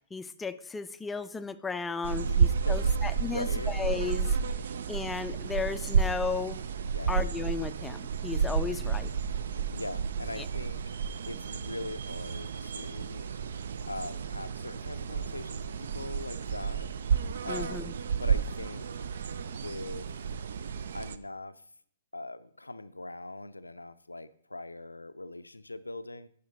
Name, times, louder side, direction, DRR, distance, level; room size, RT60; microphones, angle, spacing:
voice 1, 0.1-4.4 4.9-6.6 7.1-9.1 10.4-10.5 17.5-17.9, left 4 dB, 10° left, 12 dB, 0.4 m, -34 dB
sound 1, 2.0-21.2, right 6 dB, 60° right, 0.4 m, -31 dB
voice 2, 2.7-3.8 6.9-7.2 9.5-10.9 11.3-13.3 13.9-16.9 17.4-17.9 18.2-19.1 19.5-20.1 20.9-21.6 22.1-26.3, left 2 dB, 85° left, 14 dB, 0.4 m, -41 dB
11.0 x 4.9 x 3.9 m, 0.62 s
figure-of-eight pair, 115°, 0 cm